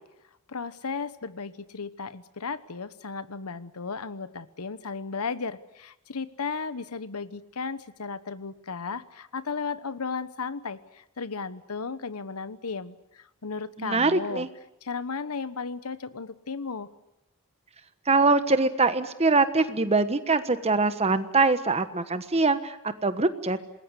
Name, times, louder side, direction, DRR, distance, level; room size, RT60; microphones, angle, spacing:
voice 1, 0.5-14.5 14.8-16.9, left 5 dB, 90° left, 14 dB, 1.1 m, -35 dB
voice 2, 13.8-14.5 18.1-22.8 23.0-23.6, right 3 dB, 30° right, 11 dB, 1.3 m, -23 dB
27.5 x 20.5 x 8.2 m, 0.85 s
head